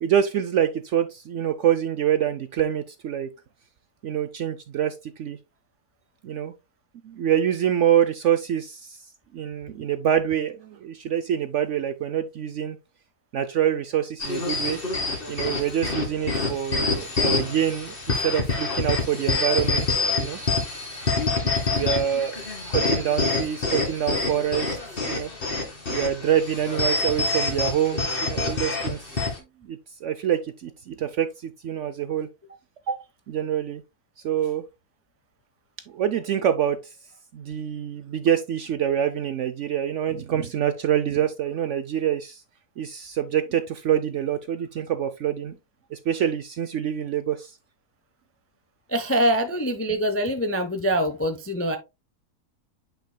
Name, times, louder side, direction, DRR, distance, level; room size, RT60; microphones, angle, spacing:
voice 1, 0.0-3.3 4.0-5.4 6.2-6.5 7.0-9.0 9.3-12.8 13.3-14.8 15.3-19.9 20.1-20.4 21.0-21.1 21.7-22.4 22.7-24.8 25.0-25.3 25.9-29.0 29.7-32.3 32.9-33.0 33.3-33.8 34.2-34.6 35.9-36.8 37.3-42.4 42.8-45.6 45.9-47.5, right 10 dB, 65° right, 0.8 m, -26 dB
sound 1, 14.2-29.4, left 3 dB, 35° left, 2.2 m, -26 dB
voice 2, 48.9-51.8, equal, 15° left, 0.4 m, -24 dB
9.0 x 5.1 x 2.2 m
omnidirectional pair, 1.7 m